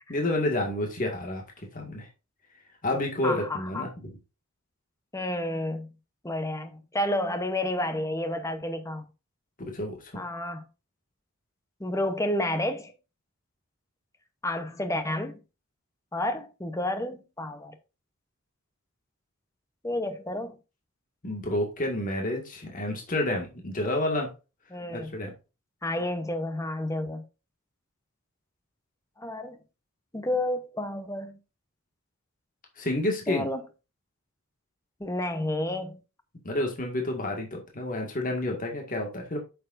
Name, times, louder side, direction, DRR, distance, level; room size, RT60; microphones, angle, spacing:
voice 1, 0.1-1.4 1.7-2.1 2.8-3.9 9.6-10.1 21.2-24.3 24.9-25.3 32.8-33.5 36.4-39.4, left 1 dB, 40° left, 1.9 m, -29 dB
voice 2, 3.2-3.9 5.1-5.9 6.2-9.0 10.1-10.7 11.8-12.9 14.4-15.4 16.1-17.8 19.8-20.6 24.7-25.1 25.8-27.2 29.2-29.6 30.1-31.4 33.3-33.6 35.0-36.0, left 1 dB, 15° left, 0.8 m, -30 dB
8.5 x 6.8 x 2.6 m
head